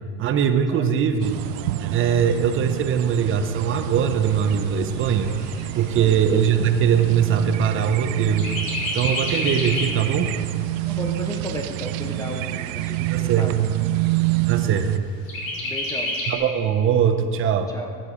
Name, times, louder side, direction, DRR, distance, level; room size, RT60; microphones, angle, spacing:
voice 1, 0.2-1.4 1.8-5.3 5.8-8.5 8.9-10.3 13.1-13.7 14.5-15.1 16.3-17.7, right 8 dB, 35° right, 7 dB, 0.6 m, -21 dB
sound 1, 1.2-15.0, right 18 dB, 85° right, 0.5 m, -28 dB
Chirp tweet, 4.2-8.0 8.4-10.0 10.5-10.6 10.9-11.9 12.5-12.6 13.0-13.1 13.5-14.0 15.3-16.4, left 1 dB, 60° left, 2.8 m, -30 dB
voice 2, 5.9-6.2 10.9-13.6 15.3-16.2 17.7-18.0, left 2 dB, 10° left, 2 dB, 0.4 m, -34 dB
12.0 x 7.5 x 4.9 m, 2.2 s
cardioid pair, 140°, 38 cm